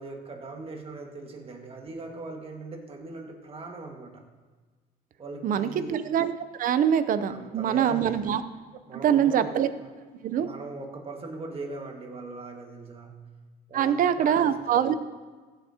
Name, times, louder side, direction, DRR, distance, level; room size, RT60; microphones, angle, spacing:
voice 1, 0.0-4.2 5.2-6.0 7.3-8.2 8.9-9.9 10.3-13.2 13.7-14.8, right 3 dB, 35° right, 2 dB, 1.7 m, -40 dB
voice 2, 5.4-6.3 6.6-8.4 9.0-9.7 10.2-10.5 13.7-14.9, right 9 dB, 55° right, 12 dB, 0.6 m, -24 dB
14.5 x 8.0 x 2.8 m, 1.4 s
cardioid pair, 110°, 17 cm